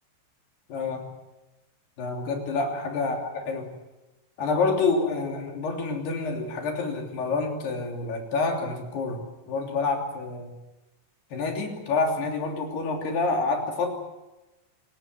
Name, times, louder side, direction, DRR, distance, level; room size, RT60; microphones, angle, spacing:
voice 1, 0.7-1.1 2.0-3.7 4.4-9.2 9.5-10.5 11.3-13.9, left 3 dB, 70° left, 2 dB, 5.1 m, -28 dB
27.5 x 17.0 x 7.8 m, 1.0 s
omnidirectional pair, 4.9 m